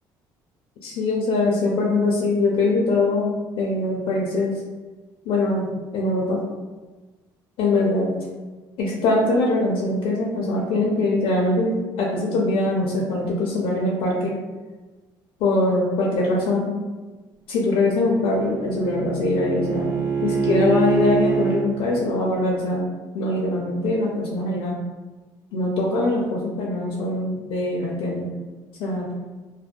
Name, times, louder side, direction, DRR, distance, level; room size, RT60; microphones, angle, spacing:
voice 1, 0.8-4.5 5.3-6.4 7.6-8.1 8.8-14.4 15.4-16.8 17.5-19.9 20.2-22.8 23.1-24.8 25.5-28.3 28.8-29.1, left 2 dB, 75° left, -3 dB, 0.5 m, -22 dB
Bowed string instrument, 17.6-21.7, right 5 dB, 60° right, 0.8 m, -25 dB
2.5 x 2.2 x 2.2 m, 1.2 s
supercardioid pair, 75°, 10 cm